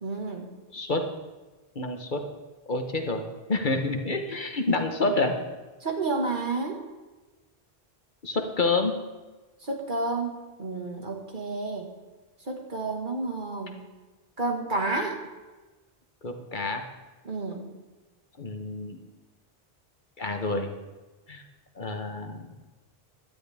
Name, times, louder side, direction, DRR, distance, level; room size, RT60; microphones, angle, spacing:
voice 1, 0.0-0.5 5.8-6.8 9.6-10.3 10.6-11.9 12.5-13.8 14.4-15.2 17.2-17.7, right 3 dB, 50° right, 2 dB, 2.0 m, -30 dB
voice 2, 0.7-1.1 1.7-2.2 2.7-3.2 3.5-5.4 8.2-8.9 16.2-16.8 18.4-19.0 20.2-20.7 21.3-21.4 21.8-22.5, left 3 dB, 50° left, 5 dB, 1.3 m, -28 dB
17.0 x 12.5 x 3.6 m, 1.2 s
omnidirectional pair, 1.1 m